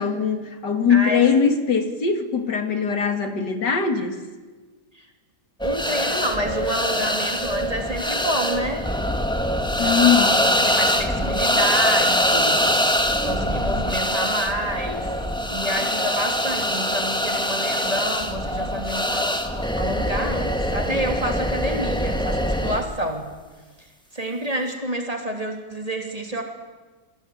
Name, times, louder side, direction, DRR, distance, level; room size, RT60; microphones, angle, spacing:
voice 1, 0.0-4.2 9.8-10.3, left 6 dB, 85° left, 7 dB, 2.9 m, -21 dB
voice 2, 0.9-1.2 4.9-5.1 5.6-8.9 9.8-12.6 13.2-15.1 15.5-23.3 24.1-26.4, right 1 dB, 20° right, 3 dB, 3.3 m, -28 dB
sound 1, 5.6-22.8, equal, 5° left, 1.8 m, -23 dB
28.0 x 22.0 x 9.4 m, 1.3 s
omnidirectional pair, 1.8 m